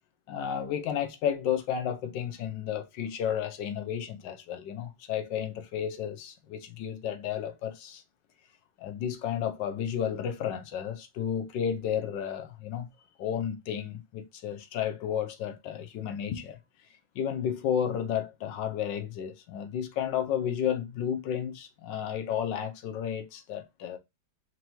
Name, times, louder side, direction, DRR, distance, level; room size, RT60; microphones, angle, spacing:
voice 1, 0.3-8.0 8.8-12.9 13.2-16.6 17.1-24.0, left 9 dB, 75° left, 1.3 m, -32 dB
4.6 x 2.7 x 2.9 m
omnidirectional pair, 2.1 m